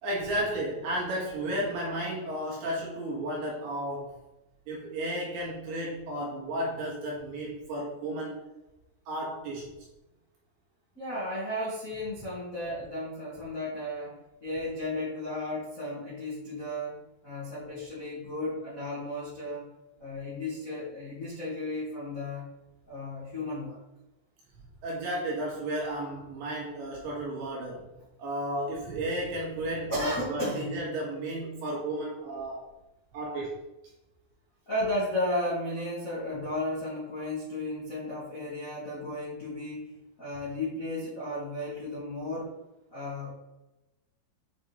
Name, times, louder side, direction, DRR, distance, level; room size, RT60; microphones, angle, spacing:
voice 1, 0.0-4.2 4.7-8.4 9.1-9.7 24.8-27.9 28.2-32.7 33.1-33.6, right 1 dB, 65° right, -4 dB, 3.1 m, -33 dB
voice 2, 10.9-19.7 20.0-22.4 22.9-23.8 29.9-30.7 34.6-42.5 42.9-43.3, left 1 dB, 80° left, -9 dB, 0.7 m, -34 dB
8.5 x 3.7 x 4.4 m, 0.99 s
omnidirectional pair, 5.9 m